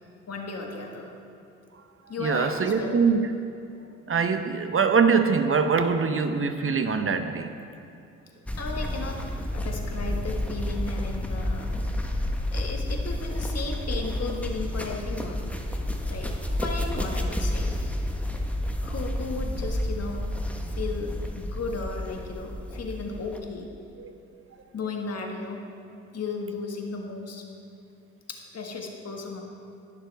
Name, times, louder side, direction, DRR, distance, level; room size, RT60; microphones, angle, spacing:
voice 1, 0.3-1.1 2.1-3.0 8.6-11.8 12.5-15.5 16.0-16.3 16.6-17.7 18.8-20.2 20.7-23.7 24.7-25.6 26.1-27.4 28.3-29.4, left 3 dB, 50° left, 1 dB, 1.7 m, -35 dB
voice 2, 2.2-3.3 4.1-7.5 24.0-24.1, right 5 dB, 40° right, 7 dB, 0.9 m, -23 dB
sound 1, 8.5-23.4, left 1 dB, 5° left, 1.2 m, -30 dB
19.5 x 6.7 x 3.5 m, 2.6 s
supercardioid pair, 55°, 33 cm